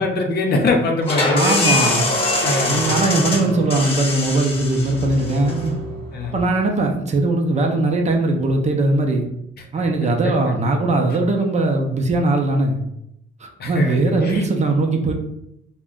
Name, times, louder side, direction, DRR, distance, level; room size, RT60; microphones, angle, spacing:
voice 1, 0.0-1.9 2.3-3.5 6.1-6.3 9.6-10.3 13.6-14.4, left 2 dB, 55° left, 2 dB, 0.6 m, -23 dB
sound 1, 1.0-6.5, left 2 dB, 30° left, 0.9 m, -23 dB
voice 2, 1.3-2.1 2.7-5.7 6.3-9.3 9.7-12.8 13.4-15.1, right 2 dB, 35° right, 2 dB, 0.5 m, -20 dB
2.4 x 2.1 x 3.6 m, 0.80 s
cardioid pair, 90°, 20 cm